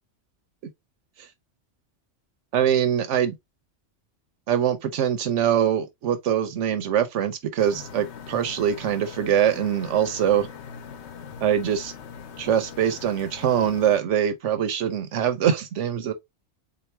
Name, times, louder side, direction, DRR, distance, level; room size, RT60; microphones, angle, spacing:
voice 1, 2.5-3.3 4.5-10.5 11.4-11.9 12.4-16.1, right 9 dB, 75° right, 1.1 m, -23 dB
sound 1, 7.6-14.0, left 7 dB, 70° left, 1.0 m, -42 dB
3.8 x 3.0 x 3.3 m
omnidirectional pair, 1.3 m